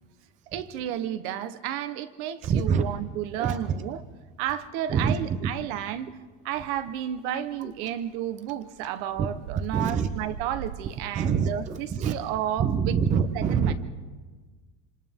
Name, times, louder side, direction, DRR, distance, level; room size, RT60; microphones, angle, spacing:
voice 1, 0.5-4.0 4.4-6.1 6.4-13.7, right 11 dB, 55° right, 12 dB, 1.1 m, -32 dB
voice 2, 2.4-2.8 3.4-3.6 4.9-5.5 7.6-7.7 9.2-9.3 9.7-10.1 11.1-12.1 12.6-13.7, right 6 dB, 20° right, 8 dB, 0.7 m, -25 dB
sound 1, 6.6-11.9, right 8 dB, 80° right, 0.9 m, -43 dB
27.0 x 26.5 x 3.6 m, 1.4 s
cardioid pair, 175°, 37 cm